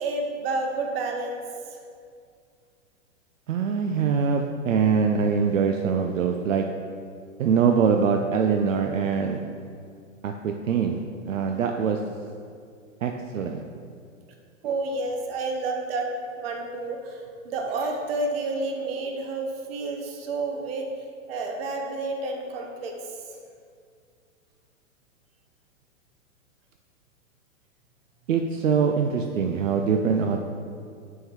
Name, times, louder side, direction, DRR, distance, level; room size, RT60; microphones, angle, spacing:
voice 1, 0.0-1.8 14.6-16.1 16.4-20.9 21.3-23.1, right 3 dB, 45° right, 3 dB, 0.9 m, -30 dB
voice 2, 3.5-6.6 7.4-9.4 10.2-12.0 13.0-13.6 28.3-30.4, right 6 dB, 70° right, 4 dB, 0.5 m, -23 dB
9.1 x 3.7 x 3.1 m, 2.3 s
figure-of-eight pair, 105°, 40 cm